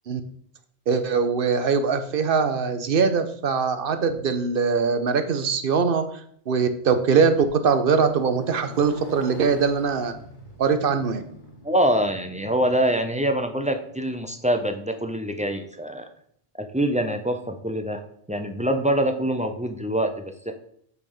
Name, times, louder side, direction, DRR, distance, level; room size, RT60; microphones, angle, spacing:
voice 1, 0.9-6.0 6.5-10.1 10.6-11.2, right 5 dB, 60° right, 9 dB, 0.9 m, -22 dB
Motorcycle, 7.5-15.5, left 1 dB, 45° left, 1.8 m, -46 dB
voice 2, 11.6-16.0 16.6-18.0 18.3-20.5, right 1 dB, 10° right, 5 dB, 0.5 m, -24 dB
8.2 x 3.5 x 5.4 m, 0.66 s
omnidirectional pair, 1.1 m